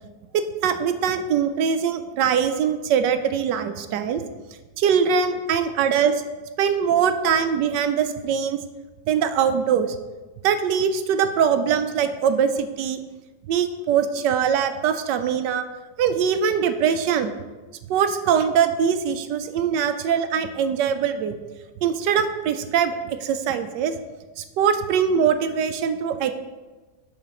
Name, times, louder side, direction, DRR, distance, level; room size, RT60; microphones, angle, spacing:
voice 1, 0.3-4.2 4.8-6.1 6.6-8.6 9.1-10.0 10.4-13.0 13.5-15.6 16.0-17.3 17.9-21.3 21.8-24.0 24.4-26.3, right 7 dB, 85° right, 9 dB, 1.3 m, -22 dB
10.0 x 4.1 x 5.9 m, 1.2 s
omnidirectional pair, 1.8 m